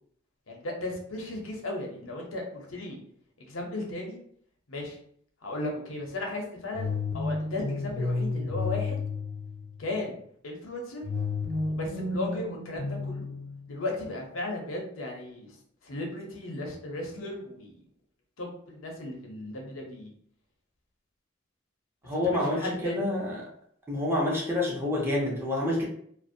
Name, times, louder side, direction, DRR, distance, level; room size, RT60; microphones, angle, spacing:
voice 1, 0.5-3.0 3.4-4.2 4.7-5.0 5.4-6.9 7.1-9.0 9.8-10.2 10.4-11.0 11.7-13.3 13.7-15.6 15.8-17.8 18.4-20.1 22.1-23.0, left 2 dB, 90° left, 0 dB, 0.7 m, -35 dB
sound 1, 6.7-9.9 11.0-14.0, left 3 dB, 45° left, 0.5 m, -32 dB
voice 2, 22.0-23.4 23.9-25.8, left 1 dB, 10° right, -4 dB, 0.6 m, -28 dB
2.4 x 2.0 x 2.6 m, 0.63 s
head